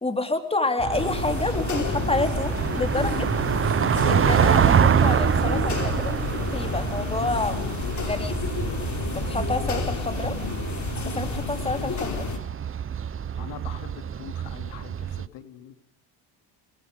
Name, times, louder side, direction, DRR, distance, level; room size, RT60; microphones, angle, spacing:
voice 1, 0.0-3.3 4.0-7.6 8.0-8.4 9.1-10.4 11.0-12.3, left 2 dB, 15° left, 7 dB, 3.6 m, -28 dB
sound 1, 0.8-15.3, right 8 dB, 30° right, 0.9 m, -26 dB
sound 2, 0.9-12.4, left 5 dB, 40° left, 4.5 m, -30 dB
voice 2, 13.4-15.7, left 10 dB, 75° left, 8 dB, 3.1 m, -43 dB
28.5 x 21.0 x 5.3 m, 0.71 s
supercardioid pair, 95°, 44 cm